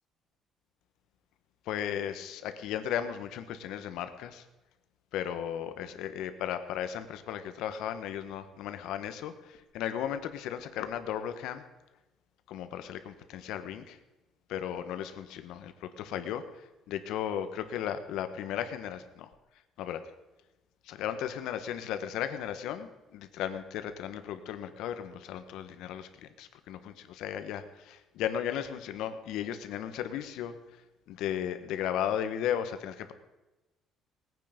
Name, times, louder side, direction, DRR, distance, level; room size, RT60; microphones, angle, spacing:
voice 1, 1.6-4.5 5.1-11.6 12.5-14.0 14.5-19.3 19.8-20.0 20.8-30.8 31.1-33.1, left 10 dB, 80° left, 10 dB, 1.3 m, -35 dB
19.5 x 9.3 x 5.2 m, 1.1 s
cardioid pair, 155°, 0 cm